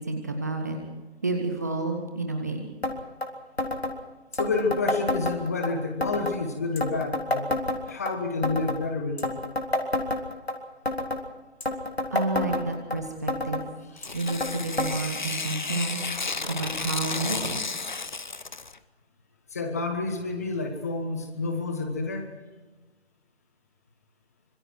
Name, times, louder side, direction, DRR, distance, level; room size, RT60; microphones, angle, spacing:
voice 1, 0.1-0.8 1.2-2.7 12.1-13.7 14.1-16.0 16.4-17.5, right 3 dB, 15° right, 4 dB, 1.0 m, -30 dB
sound 1, 2.8-2.9 3.2-3.3 3.6-3.9 4.3-5.7 6.0-6.4 6.8-8.1 8.4-8.8 9.2-10.5 10.9-11.2 11.6-13.0 13.3-13.6 14.0-14.5 14.8-14.9 15.2-15.3 16.0-16.1 16.9-17.0, left 1 dB, 65° left, 3.5 m, -28 dB
voice 2, 4.3-7.5 7.9-9.3 13.9-14.2 19.5-22.3, left 3 dB, 15° left, 5 dB, 1.3 m, -29 dB
Tearing, 14.0-18.8, left 4 dB, 45° left, 0.9 m, -32 dB
25.5 x 24.0 x 4.6 m, 1.2 s
figure-of-eight pair, 155°, 33 cm